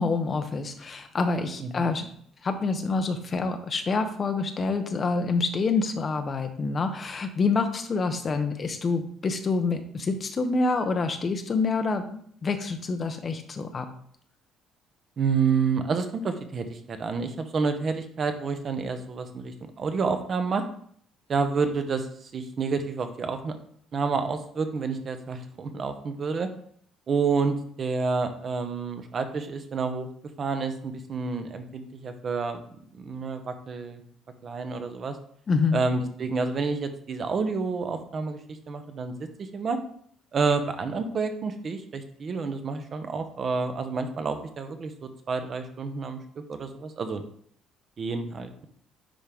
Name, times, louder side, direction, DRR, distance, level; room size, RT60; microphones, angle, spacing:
voice 1, 0.0-2.1 2.4-13.9 35.5-35.8, left 4 dB, 25° left, 7 dB, 0.7 m, -27 dB
voice 2, 1.6-1.9 15.2-20.6 21.3-23.6 23.9-26.5 27.1-30.1 30.4-32.6 32.9-34.0 34.4-35.2 35.7-38.4 38.7-39.8 40.3-47.2 48.0-48.7, right 4 dB, 30° right, 8 dB, 0.7 m, -29 dB
10.0 x 3.6 x 3.5 m, 0.63 s
cardioid pair, 170°, 0 cm